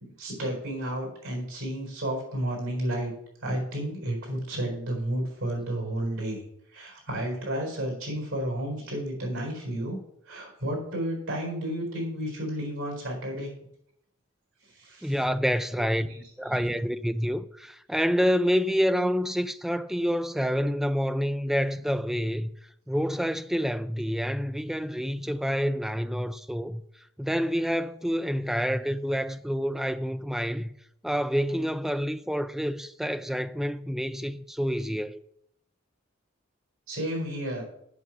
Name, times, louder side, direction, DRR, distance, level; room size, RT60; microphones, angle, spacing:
voice 1, 0.2-3.1 3.4-6.4 6.7-10.0 10.3-13.5 14.7-15.1 16.0-16.7 36.9-37.6, right 1 dB, 85° right, 4.5 m, -32 dB
voice 2, 15.0-16.1 16.4-22.5 22.9-26.8 27.2-30.7 31.0-35.2, equal, ahead, 0.3 m, -28 dB
8.3 x 6.1 x 6.0 m
head